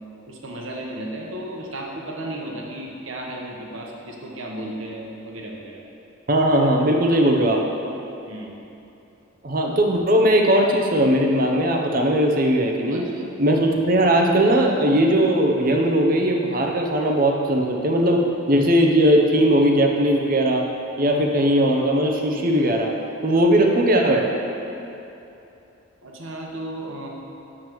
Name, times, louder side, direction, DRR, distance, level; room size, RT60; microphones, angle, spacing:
voice 1, 0.3-5.8 8.3-8.6 12.9-13.1 26.0-27.1, right 1 dB, 70° right, -1 dB, 1.0 m, -34 dB
voice 2, 6.3-7.6 9.4-13.0 13.4-20.6 21.0-22.9 23.2-24.3, right 1 dB, 40° right, 1 dB, 0.7 m, -19 dB
8.8 x 7.2 x 3.1 m, 2.8 s
head